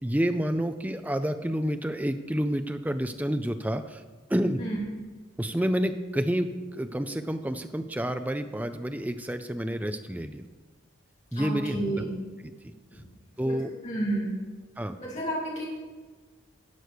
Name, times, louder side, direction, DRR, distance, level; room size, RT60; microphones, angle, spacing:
voice 1, 0.0-4.0 4.3-4.6 5.4-10.4 11.3-12.0 12.4-12.7 13.4-13.7 14.8-15.0, equal, 10° right, 8 dB, 0.4 m, -29 dB
voice 2, 11.3-12.1 12.9-13.0 13.4-13.6 13.8-14.3 15.0-15.6, right 1 dB, 35° left, -6 dB, 3.2 m, -31 dB
12.5 x 4.9 x 6.7 m, 1.3 s
head